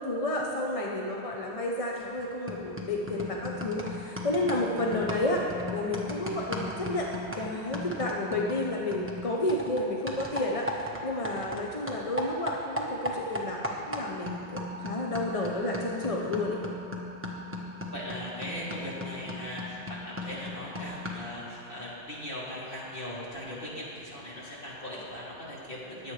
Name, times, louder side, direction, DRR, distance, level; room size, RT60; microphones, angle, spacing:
voice 1, 0.0-5.4 5.7-7.1 7.3-16.6, left 1 dB, 35° left, -1 dB, 0.8 m, -31 dB
sound 1, 2.0-2.2 2.5-11.6 11.9-21.4, left 1 dB, 10° right, 1.1 m, -37 dB
voice 2, 17.9-26.1, left 1 dB, 50° left, -8 dB, 3.1 m, -39 dB
21.5 x 8.2 x 3.3 m, 2.8 s
omnidirectional pair, 1.1 m